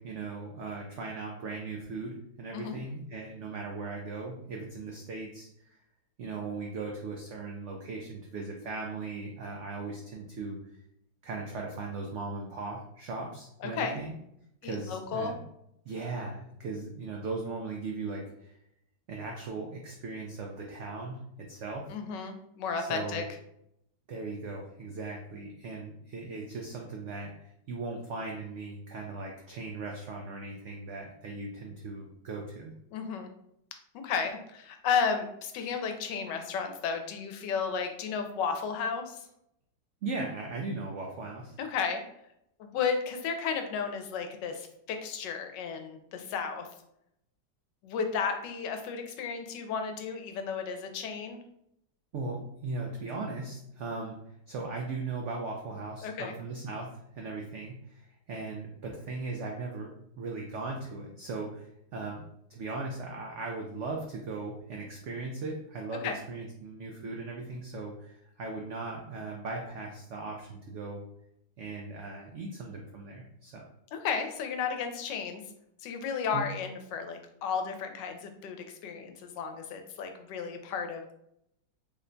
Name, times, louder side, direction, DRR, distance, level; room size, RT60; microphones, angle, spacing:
voice 1, 0.0-5.8 6.2-10.6 11.2-14.1 14.6-15.5 15.9-18.6 19.1-21.9 22.8-23.2 24.1-27.3 27.7-32.7 40.0-41.6 52.1-54.2 54.5-59.9 60.2-71.0 71.6-73.6 76.3-76.5, right 3 dB, 85° right, 0 dB, 0.6 m, -38 dB
voice 2, 13.6-14.0 14.6-15.3 21.9-23.2 32.9-33.3 34.0-39.2 41.6-42.0 42.6-46.7 47.8-51.4 56.0-56.4 66.0-66.2 73.9-75.4 75.8-78.6 78.8-81.1, left 6 dB, 90° left, 6 dB, 1.2 m, -33 dB
3.4 x 2.2 x 3.8 m, 0.77 s
omnidirectional pair, 1.8 m